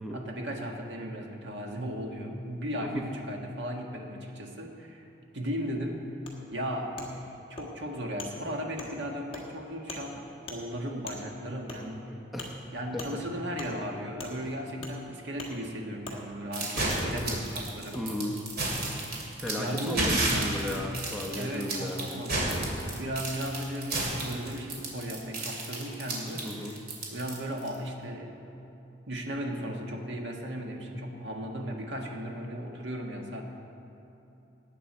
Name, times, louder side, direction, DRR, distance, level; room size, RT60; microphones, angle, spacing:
voice 1, 0.1-5.1 5.3-6.0 6.5-12.1 12.7-18.1 19.6-20.7 21.4-26.8 27.1-28.4 29.1-33.4, equal, 70° right, 1 dB, 1.6 m, -36 dB
Wood, 6.3-6.4 7.0-7.1 7.6-7.7 8.2-8.3 8.8-8.9 9.3-9.4 9.9-10.0 10.5-10.6 11.1-11.2 11.7-11.8 12.4-12.5 13.0-13.1 13.6-13.7 14.2-14.3 14.8-15.0 15.4-15.5 16.0-16.2 16.8-16.9 17.9-18.0 18.8-18.9 19.5-19.6, left 2 dB, 30° left, 1.7 m, -41 dB
voice 2, 12.1-12.5 12.9-13.2 17.9-18.4 19.4-22.1 26.4-26.8, left 1 dB, ahead, -1 dB, 0.9 m, -35 dB
sound 1, 16.5-27.7, right 2 dB, 50° right, 2.7 m, -31 dB
18.5 x 8.4 x 4.4 m, 3.0 s
head